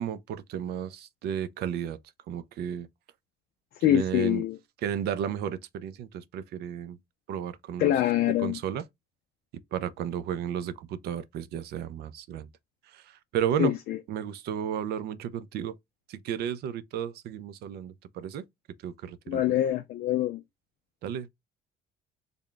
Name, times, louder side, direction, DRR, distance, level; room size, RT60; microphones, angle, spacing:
voice 1, 0.0-2.0 2.3-2.9 3.9-4.4 4.8-7.0 7.3-7.9 8.4-8.8 9.7-12.5 12.9-13.7 14.1-15.8 16.1-18.4 18.8-19.4 21.0-21.3, right 9 dB, 70° right, 0.5 m, -33 dB
voice 2, 3.8-4.6 7.8-8.6 13.6-14.0 19.3-20.4, left 12 dB, 65° left, 0.4 m, -25 dB
3.4 x 2.2 x 3.8 m
cardioid pair, 110°, 17 cm